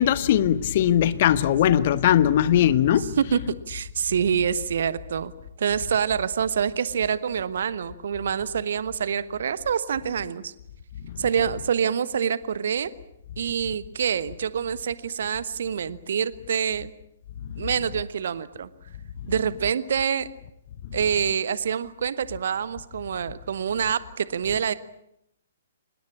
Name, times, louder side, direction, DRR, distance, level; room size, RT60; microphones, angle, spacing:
voice 1, 0.0-3.1, left 10 dB, 40° left, 1.2 m, -20 dB
voice 2, 3.0-5.3 5.6-10.5 11.2-12.9 13.4-16.9 17.6-18.7 19.3-20.3 20.9-24.7, right 7 dB, 55° right, 1.2 m, -26 dB
25.5 x 20.5 x 8.6 m
figure-of-eight pair, 120°, 0 cm